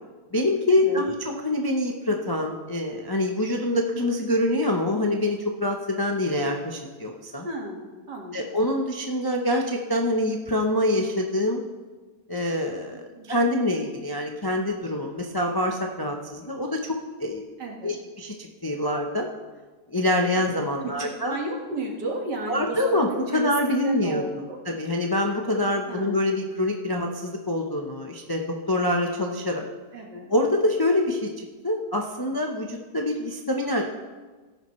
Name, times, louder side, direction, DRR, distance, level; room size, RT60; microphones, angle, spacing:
voice 1, 0.3-7.5 8.3-11.6 12.3-17.4 17.8-19.3 19.9-21.4 22.5-29.6 30.3-31.3 31.6-33.8, left 1 dB, 30° left, 1 dB, 0.4 m, -25 dB
voice 2, 7.4-7.8 8.1-8.4 12.9-13.3 17.6-17.9 21.0-24.6 25.9-26.2 29.9-30.3, right 2 dB, 70° right, 0 dB, 2.3 m, -33 dB
17.0 x 9.8 x 3.2 m, 1.3 s
omnidirectional pair, 1.9 m